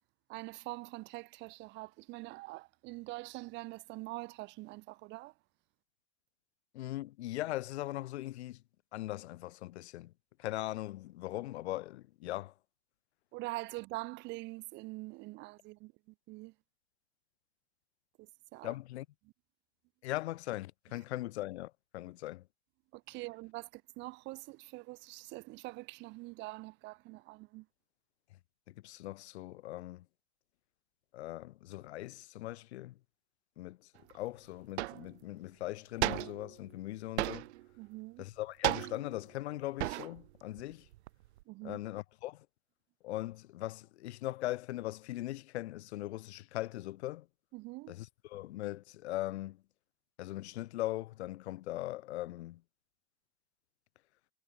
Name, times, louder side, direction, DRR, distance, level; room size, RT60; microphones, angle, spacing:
voice 1, 0.3-5.3 13.3-15.9 16.3-16.5 18.2-18.7 22.9-27.7 37.8-38.2 41.5-41.8 47.5-47.9, right 22 dB, 35° right, 1.2 m, -44 dB
voice 2, 6.7-8.6 8.9-10.1 10.4-12.5 18.6-19.1 20.0-22.5 28.7-30.1 31.1-33.0 33.6-37.5 38.2-40.9 41.6-42.5 43.0-47.3 47.9-49.6 50.2-52.6, left 16 dB, 85° left, 2.2 m, -40 dB
sound 1, 34.1-34.2 34.8-35.2 36.0-36.6 37.2-37.7 38.6-39.2 39.8-40.3 40.6-41.4, right 17 dB, 85° right, 1.0 m, -34 dB
supercardioid pair, 170°, 32 cm